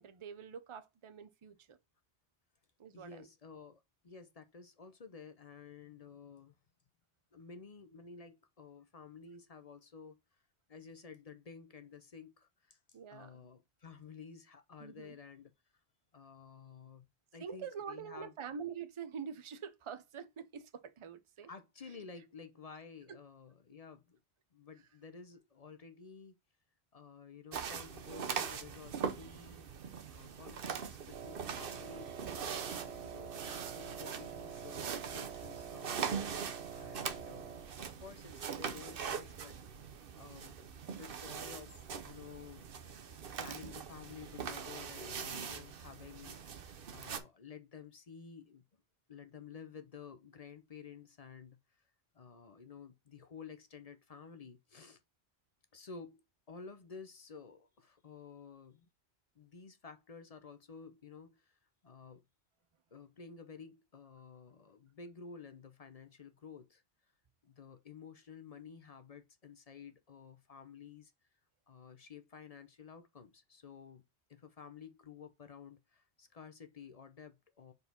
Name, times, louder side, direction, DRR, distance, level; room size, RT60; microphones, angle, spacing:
voice 1, 0.0-1.8 2.8-3.3 12.9-13.5 14.8-15.2 17.4-21.5 23.1-23.2, right 7 dB, 35° right, 0.6 m, -45 dB
voice 2, 2.9-6.5 7.3-10.2 10.7-15.8 16.1-17.1 17.3-18.3 21.4-24.2 24.5-26.4 26.9-29.7 30.1-39.6 40.1-40.6 40.9-42.7 43.4-48.6 49.1-51.8 52.1-55.0 55.7-58.9 59.4-62.2 62.9-66.8 67.4-71.1 71.7-74.0 74.3-77.7, left 6 dB, 40° left, 0.6 m, -53 dB
sound 1, 27.5-47.2, right 6 dB, 60° right, 0.9 m, -42 dB
Wind instrument woodwind instrument, 31.1-37.8, right 7 dB, 85° right, 0.9 m, -47 dB
4.7 x 4.1 x 5.2 m
omnidirectional pair, 1.1 m